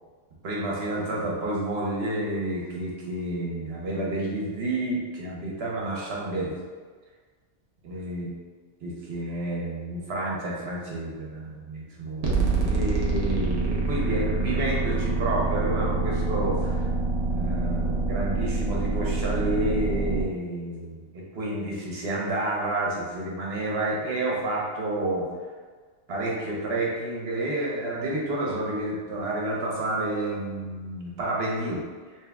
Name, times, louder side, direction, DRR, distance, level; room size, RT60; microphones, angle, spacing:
voice 1, 0.4-6.6 7.8-8.3 8.8-16.9 17.3-25.3 26.1-31.8, right 1 dB, 65° right, -3 dB, 1.1 m, -30 dB
sound 1, 12.2-20.2, right 3 dB, 85° right, 1.0 m, -26 dB
3.5 x 3.1 x 3.5 m, 1.5 s
omnidirectional pair, 1.2 m